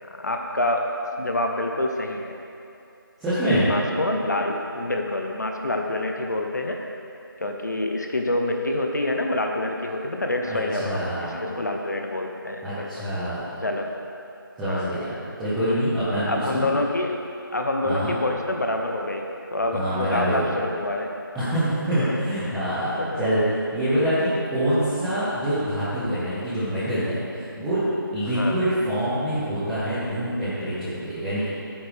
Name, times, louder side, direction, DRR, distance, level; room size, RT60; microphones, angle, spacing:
voice 1, 0.1-0.9 1.2-2.3 3.6-6.8 7.4-12.9 13.6-13.9 14.7-14.9 16.3-17.2 17.5-19.2 19.5-21.1 22.8-23.3 28.3-28.7, left 1 dB, 50° left, 3 dB, 0.9 m, -27 dB
voice 2, 3.2-3.7 10.5-11.4 12.6-13.4 14.6-15.1 15.4-16.7 17.8-18.1 19.7-20.6 21.3-23.4 23.7-27.8 28.1-31.5, equal, ahead, -19 dB, 0.6 m, -25 dB
14.0 x 8.9 x 3.5 m, 2.7 s
figure-of-eight pair, 165°, 12 cm